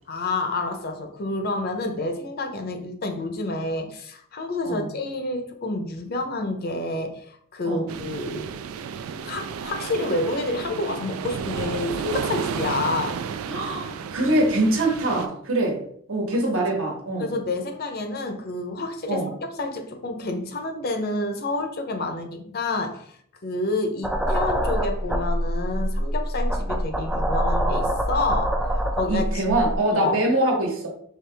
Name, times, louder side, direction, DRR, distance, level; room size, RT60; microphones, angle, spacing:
voice 1, 0.1-8.6 9.2-13.2 17.2-19.2 19.6-23.1 23.4-28.5 28.9-29.4 29.9-30.2, left 2 dB, 45° left, 5 dB, 0.6 m, -29 dB
sound 1, 7.9-15.3, right 6 dB, 90° right, 0.4 m, -32 dB
voice 2, 13.5-15.8 16.1-17.3 19.1-19.3 29.1-30.9, right 1 dB, 70° right, 0 dB, 1.2 m, -23 dB
sound 2, 24.0-29.7, equal, 5° right, 0.3 m, -25 dB
4.7 x 2.8 x 3.4 m, 0.63 s
head